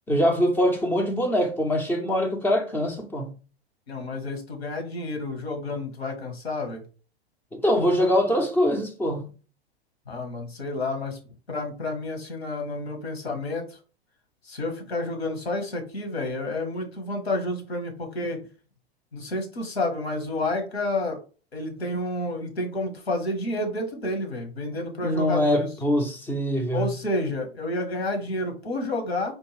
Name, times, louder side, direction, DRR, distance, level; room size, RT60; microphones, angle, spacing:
voice 1, 0.1-3.3 7.5-9.3 25.0-26.9, equal, 5° left, 0.5 m, -23 dB
voice 2, 3.9-6.8 10.1-11.2 11.5-13.8 14.4-18.4 19.1-21.2 21.5-25.7 26.7-29.3, left 2 dB, 75° left, 1.4 m, -30 dB
4.4 x 2.3 x 3.2 m
figure-of-eight pair, 105°, 32 cm